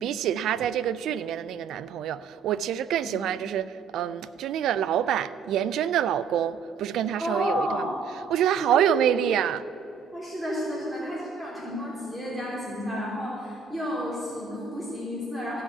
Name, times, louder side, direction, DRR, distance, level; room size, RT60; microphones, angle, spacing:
voice 1, 0.0-7.8 8.3-9.6, right 10 dB, 80° right, 0.4 m, -26 dB
voice 2, 7.2-8.0 8.5-9.0 10.1-15.6, equal, 15° right, 3.0 m, -31 dB
15.5 x 5.6 x 8.2 m
cardioid pair, 90°, 0 cm